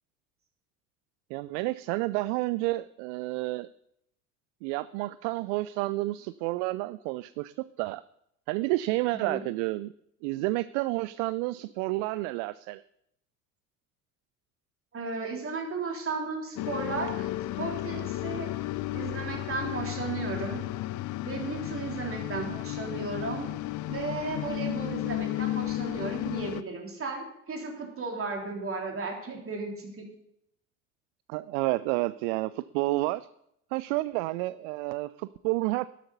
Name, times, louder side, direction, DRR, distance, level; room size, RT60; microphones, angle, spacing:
voice 1, 1.3-3.7 4.6-8.0 8.5-9.9 10.2-12.8 22.3-22.6 31.3-33.3 33.7-35.9, right 19 dB, 55° right, 17 dB, 0.5 m, -30 dB
voice 2, 14.9-17.3 17.6-18.5 18.9-20.6 21.2-23.5 23.9-30.0, right 4 dB, 30° right, 1 dB, 3.5 m, -35 dB
sound 1, 16.6-26.6, left 16 dB, 45° left, 0.6 m, -33 dB
12.5 x 11.5 x 4.1 m, 0.75 s
figure-of-eight pair, 60°, 43 cm